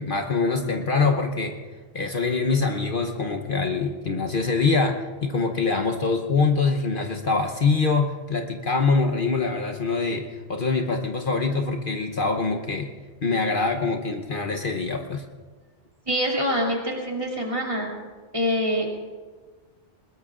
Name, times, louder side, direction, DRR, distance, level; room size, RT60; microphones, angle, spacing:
voice 1, 0.0-1.5 1.9-10.2 10.5-12.9 13.2-15.2, left 4 dB, 50° left, 3 dB, 1.1 m, -24 dB
voice 2, 16.1-17.9 18.3-18.9, equal, 30° right, -1 dB, 2.7 m, -25 dB
21.0 x 20.5 x 2.5 m, 1.4 s
omnidirectional pair, 1.2 m